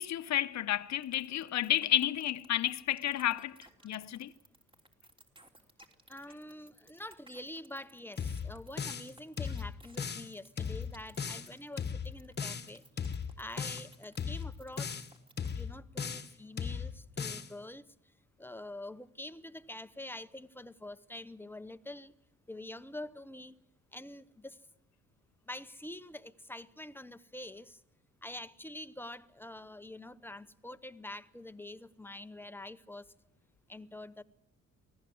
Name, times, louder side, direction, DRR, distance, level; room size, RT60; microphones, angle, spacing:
voice 1, 0.0-4.3, left 12 dB, 65° left, 0.9 m, -31 dB
sound 1, 1.0-15.7, right 2 dB, 15° right, 3.3 m, -59 dB
voice 2, 6.1-12.8 13.4-15.1 15.5-17.8 18.4-22.1 22.5-23.5 23.9-24.6 25.5-27.8 28.2-33.1 33.7-34.2, left 1 dB, 5° left, 0.9 m, -46 dB
sound 2, 8.2-9.1 9.4-10.3 10.6-11.5 11.8-12.7 13.0-13.9 14.2-15.1 15.4-16.3 16.6-17.5, left 6 dB, 35° left, 1.3 m, -37 dB
24.0 x 17.0 x 7.8 m
cardioid pair, 90°, 30 cm